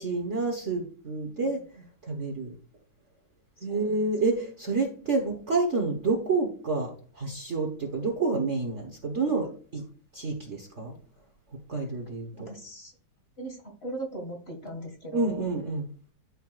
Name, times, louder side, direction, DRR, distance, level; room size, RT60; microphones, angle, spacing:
voice 1, 0.0-1.6 2.0-2.5 3.6-9.8 10.1-10.9 11.7-12.5 15.1-15.9, right 3 dB, 40° right, 1.4 m, -29 dB
voice 2, 1.4-1.8 3.6-4.1 9.2-9.5 12.4-13.0 13.4-15.4, right 2 dB, 30° left, 2.2 m, -40 dB
13.0 x 5.6 x 2.4 m
omnidirectional pair, 2.1 m